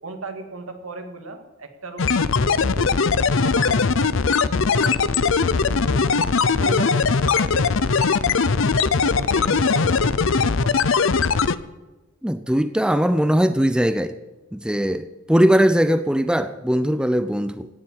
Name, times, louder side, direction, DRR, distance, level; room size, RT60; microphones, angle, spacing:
voice 1, 0.0-2.9 3.4-6.1 6.6-8.3 9.0-10.9, right 2 dB, 85° right, 6 dB, 2.0 m, -36 dB
sound 1, 2.0-11.6, left 5 dB, 65° left, 0.6 m, -20 dB
voice 2, 12.2-14.1 14.5-17.7, equal, 5° right, 11 dB, 0.5 m, -20 dB
17.5 x 7.6 x 8.7 m, 1.1 s
head